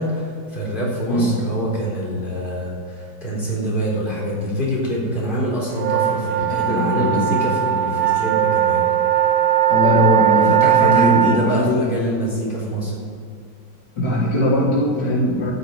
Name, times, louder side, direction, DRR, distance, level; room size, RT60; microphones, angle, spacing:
voice 1, 0.0-8.8 10.3-12.9, equal, 25° left, -6 dB, 3.8 m, -25 dB
sound 1, 5.7-11.4, right 12 dB, 80° right, 2.2 m, -18 dB
voice 2, 6.4-7.3 9.7-11.8 14.0-15.5, left 1 dB, 60° left, -4 dB, 2.2 m, -20 dB
14.0 x 6.8 x 7.9 m, 2.3 s
omnidirectional pair, 2.1 m